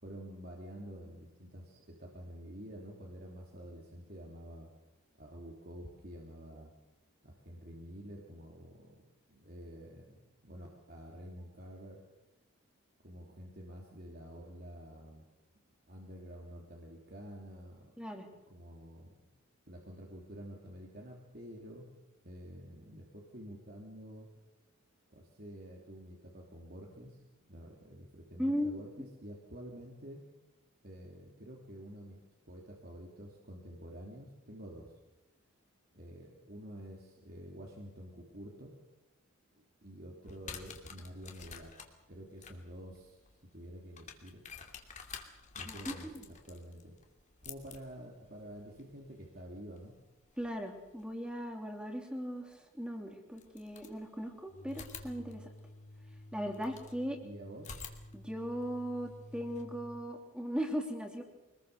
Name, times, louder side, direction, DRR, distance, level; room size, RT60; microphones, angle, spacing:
voice 1, 0.0-4.7 5.2-6.7 7.2-9.0 9.3-12.0 13.0-15.2 15.9-17.9 18.3-19.3 19.7-21.9 22.2-24.3 25.1-30.2 30.8-35.0 35.9-38.7 39.6-41.7 42.1-44.4 45.5-47.0 47.4-49.9 57.2-57.7, equal, 45° right, -1 dB, 3.2 m, -49 dB
voice 2, 28.4-29.1 45.7-46.2 50.4-55.5 56.3-57.2 58.1-61.2, equal, 5° right, 3 dB, 3.3 m, -38 dB
sound 1, 40.2-51.0 52.5-52.6 53.3-54.3 54.7-57.0 57.6-59.6, left 6 dB, 35° left, 2.7 m, -51 dB
sound 2, 54.5-60.1, equal, 90° left, 5.0 m, -52 dB
26.0 x 20.5 x 6.9 m, 1.0 s
head